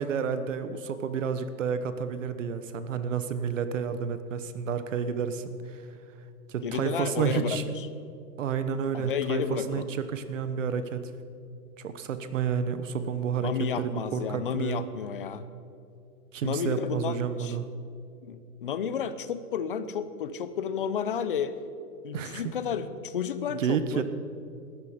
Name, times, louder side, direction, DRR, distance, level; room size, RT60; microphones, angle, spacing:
voice 1, 0.0-5.8 6.5-7.6 8.4-11.1 11.8-14.8 16.3-17.7 22.1-22.5 23.6-24.0, right 7 dB, 55° right, 11 dB, 1.1 m, -30 dB
voice 2, 6.6-7.9 8.9-10.0 13.4-15.4 16.4-17.6 18.2-21.6 22.0-24.0, left 7 dB, 35° left, 13 dB, 0.7 m, -32 dB
18.5 x 13.0 x 5.0 m, 2.6 s
hypercardioid pair, 170°, 47 cm